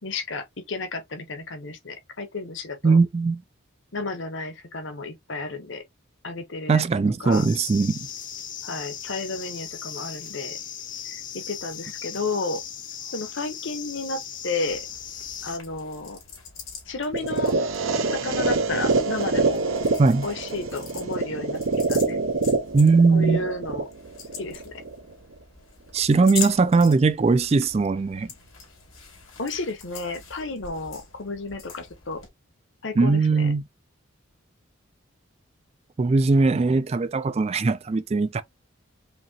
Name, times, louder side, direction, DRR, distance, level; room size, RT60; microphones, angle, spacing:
voice 1, 0.0-3.0 3.9-5.8 6.2-6.8 7.2-7.5 8.6-10.6 11.0-12.6 13.1-14.9 15.4-16.2 16.9-17.5 18.1-19.6 20.2-22.2 23.1-23.8 24.4-24.8 29.4-32.2 32.8-33.5, left 3 dB, 65° left, 1.1 m, -32 dB
voice 2, 2.8-3.4 6.7-8.1 20.0-20.3 22.7-23.4 25.9-28.3 33.0-33.6 36.0-38.4, right 4 dB, 30° right, 0.3 m, -20 dB
sound 1, 7.3-15.6, left 9 dB, 40° left, 0.7 m, -37 dB
sound 2, 14.6-32.3, left 6 dB, 85° left, 2.4 m, -42 dB
sound 3, 17.1-25.1, right 3 dB, 75° right, 0.9 m, -26 dB
5.1 x 2.8 x 2.8 m
head